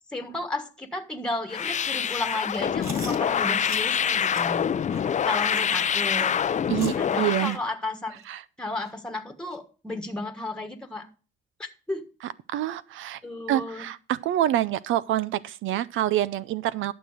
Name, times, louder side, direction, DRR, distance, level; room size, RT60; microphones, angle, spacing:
voice 1, 0.1-4.6 5.2-6.4 7.0-8.2 8.6-11.1 11.6-12.1 13.2-13.9, left 2 dB, 5° left, 1.4 m, -33 dB
sound 1, 1.5-7.6, left 8 dB, 35° left, 0.5 m, -25 dB
Chewing mastication, 2.8-3.2 3.6-3.9 4.3-4.5 4.9-5.0 5.5-5.7 6.2-6.3 6.8-7.0 7.5-7.6 8.2-8.3 8.8-8.9 9.5-9.6, right 1 dB, 15° right, 2.7 m, -40 dB
voice 2, 6.7-7.6 8.3-8.4 12.5-13.2 13.5-16.9, right 13 dB, 80° right, 0.5 m, -26 dB
12.0 x 6.3 x 4.9 m
cardioid pair, 90°, 20 cm